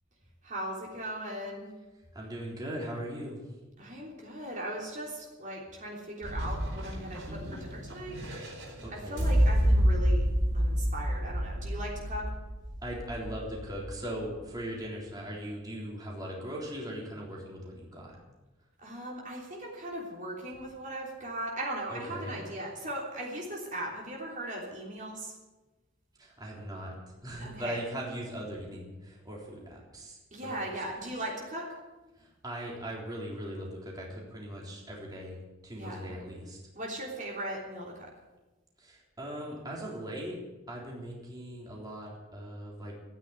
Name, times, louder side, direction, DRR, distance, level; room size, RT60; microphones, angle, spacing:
voice 1, 0.4-1.7 3.8-8.2 8.9-10.2 10.5-12.2 18.8-25.3 27.4-27.8 30.3-31.6 35.7-36.1 36.7-38.1, right 1 dB, 40° right, -2 dB, 3.4 m, -38 dB
voice 2, 2.1-3.4 7.3-7.6 8.8-9.4 12.8-18.2 21.9-22.4 26.2-26.9 27.2-30.8 32.2-35.4 35.6-36.6 38.8-40.4 40.7-42.9, equal, 20° right, -3 dB, 3.6 m, -39 dB
sound 1, 6.2-14.2, equal, 65° right, 5.0 m, -29 dB
13.5 x 9.8 x 9.6 m, 1.1 s
head